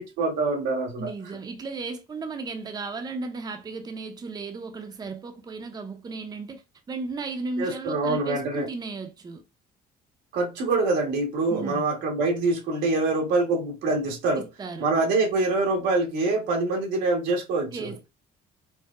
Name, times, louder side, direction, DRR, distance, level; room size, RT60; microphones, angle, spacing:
voice 1, 0.0-1.1 7.6-8.7 10.3-14.4 14.8-17.9, right 3 dB, 90° right, 1.3 m, -25 dB
voice 2, 1.0-6.6 6.9-9.4 11.5-11.8 14.4-14.9 17.7-18.1, right 3 dB, 25° right, 0.6 m, -35 dB
4.5 x 2.0 x 2.4 m
cardioid pair, 110°, 17 cm